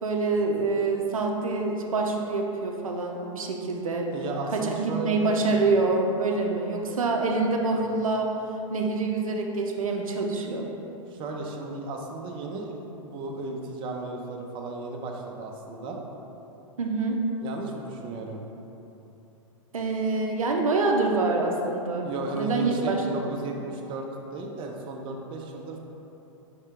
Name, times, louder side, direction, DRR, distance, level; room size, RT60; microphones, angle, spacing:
voice 1, 0.0-4.1 4.5-8.3 8.7-10.7 16.8-17.2 19.7-22.1 22.3-23.4, right 3 dB, 85° right, 1 dB, 0.5 m, -26 dB
voice 2, 4.1-5.7 7.7-7.8 11.1-16.0 17.4-18.4 22.0-24.1 24.3-25.8, right 3 dB, 30° right, 0 dB, 0.5 m, -35 dB
5.6 x 2.7 x 3.5 m, 3.0 s
hypercardioid pair, 105°, 17 cm